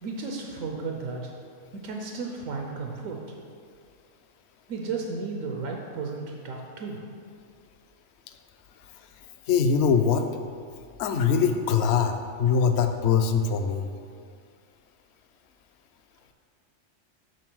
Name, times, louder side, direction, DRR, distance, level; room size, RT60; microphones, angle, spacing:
voice 1, 0.0-1.3 1.7-3.2 4.7-7.0, right 4 dB, 90° right, 1 dB, 1.1 m, -34 dB
voice 2, 9.5-10.3 11.0-13.8, left 6 dB, 65° left, 7 dB, 0.8 m, -22 dB
8.1 x 3.8 x 6.1 m, 2.2 s
omnidirectional pair, 1.3 m